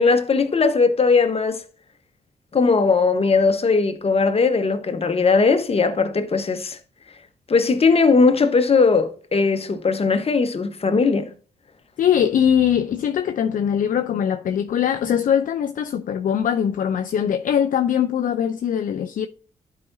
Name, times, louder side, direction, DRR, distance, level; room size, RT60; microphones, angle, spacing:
voice 1, 0.0-1.6 2.5-6.8 7.5-11.3, left 4 dB, 40° left, 1.2 m, -19 dB
voice 2, 12.0-19.3, left 9 dB, 60° left, 0.5 m, -21 dB
12.0 x 5.0 x 2.7 m
hypercardioid pair, 45°, 16 cm